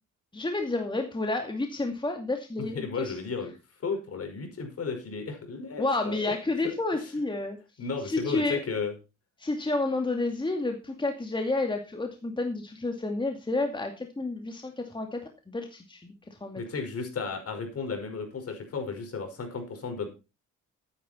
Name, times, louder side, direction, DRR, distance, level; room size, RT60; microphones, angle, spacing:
voice 1, 0.3-3.1 5.8-7.6 8.0-8.6 9.4-16.6, left 2 dB, 15° left, 4 dB, 2.4 m, -30 dB
voice 2, 2.7-3.5 3.8-6.2 6.6-6.7 7.0-7.1 7.8-8.9 16.6-20.1, left 5 dB, 50° left, 5 dB, 5.5 m, -33 dB
13.5 x 9.9 x 4.4 m, 0.29 s
cardioid pair, 90°, 30 cm